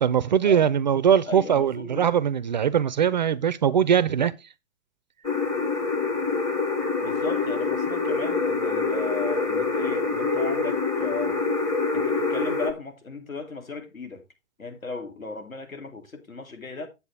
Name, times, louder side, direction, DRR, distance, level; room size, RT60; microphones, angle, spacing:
voice 1, 0.0-4.3, right 8 dB, 35° right, 0.4 m, -21 dB
voice 2, 1.2-2.1 7.0-11.4 11.9-14.2 14.6-16.9, left 3 dB, 85° left, 2.6 m, -36 dB
sound 1, 5.2-12.7, left 4 dB, 5° left, 0.6 m, -25 dB
8.4 x 8.1 x 3.3 m
figure-of-eight pair, 120°, 40 cm